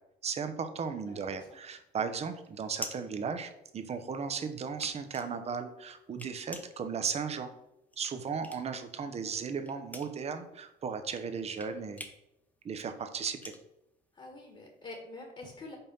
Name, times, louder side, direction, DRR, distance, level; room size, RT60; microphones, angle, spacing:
voice 1, 0.2-7.5 8.0-12.0 12.6-13.5, right 6 dB, 40° right, 8 dB, 0.9 m, -36 dB
voice 2, 1.1-1.5 14.1-15.8, left 2 dB, 35° left, 1 dB, 1.5 m, -46 dB
sound 1, 1.5-4.0 4.4-8.9 9.2-14.7, left 1 dB, 10° left, 0.8 m, -47 dB
5.5 x 4.2 x 5.5 m, 0.86 s
cardioid pair, 110°, 17 cm